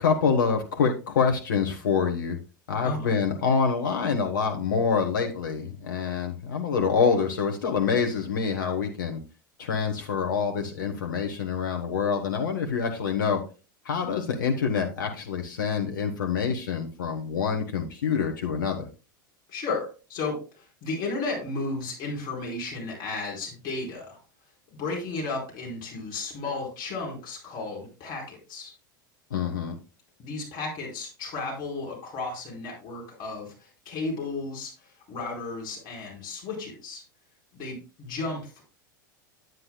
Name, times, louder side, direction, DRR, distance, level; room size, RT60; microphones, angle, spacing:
voice 1, 0.0-2.4 2.7-9.2 9.6-13.4 13.8-18.8 29.3-29.7, left 6 dB, 70° left, 3 dB, 1.1 m, -26 dB
voice 2, 19.5-24.2 24.8-28.7 30.2-37.0 37.5-38.6, left 3 dB, 40° left, -1 dB, 4.5 m, -34 dB
9.5 x 9.4 x 2.2 m, 0.33 s
figure-of-eight pair, 85°, 11 cm